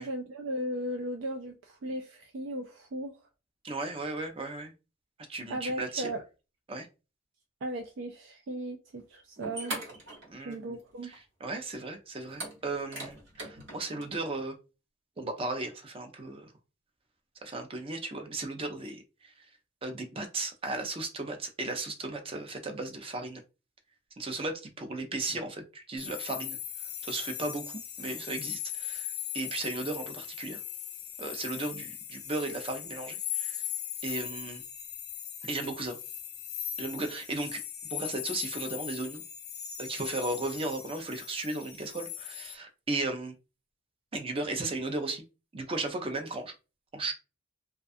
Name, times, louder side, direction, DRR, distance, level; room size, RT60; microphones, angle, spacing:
voice 1, 0.0-3.2 5.5-6.2 7.6-9.8 10.4-11.1, right 1 dB, 90° right, 0.4 m, -36 dB
voice 2, 3.6-4.7 5.3-6.1 6.7-6.9 10.2-10.8 11.0-14.6 15.2-16.5 17.4-19.3 19.8-23.4 24.2-26.6 27.0-30.6 31.2-33.7 34.0-34.6 35.4-36.0 36.8-37.6 37.9-39.2 39.8-43.3 44.1-45.2 45.5-46.5 46.9-47.1, right 2 dB, 30° right, 0.5 m, -35 dB
sound 1, 9.0-9.1 9.4-10.8 11.1-11.2 12.3-14.1, right 1 dB, 70° right, 1.2 m, -40 dB
sound 2, 26.0-42.5, left 11 dB, 60° left, 0.4 m, -39 dB
2.4 x 2.2 x 2.5 m
head